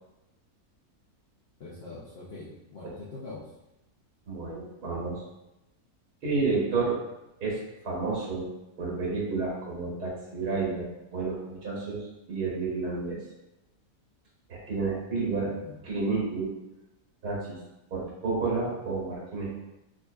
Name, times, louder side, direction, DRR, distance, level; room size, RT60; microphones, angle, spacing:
voice 1, 1.6-3.5 15.4-15.8, left 3 dB, 65° left, -7 dB, 0.6 m, -43 dB
voice 2, 4.3-5.2 6.2-7.0 7.4-8.5 8.8-12.0 12.3-13.2 14.5-15.5 15.8-16.5 17.2-17.6 17.9-19.6, right 4 dB, 80° right, -5 dB, 1.8 m, -30 dB
5.0 x 2.4 x 2.3 m, 0.94 s
omnidirectional pair, 1.7 m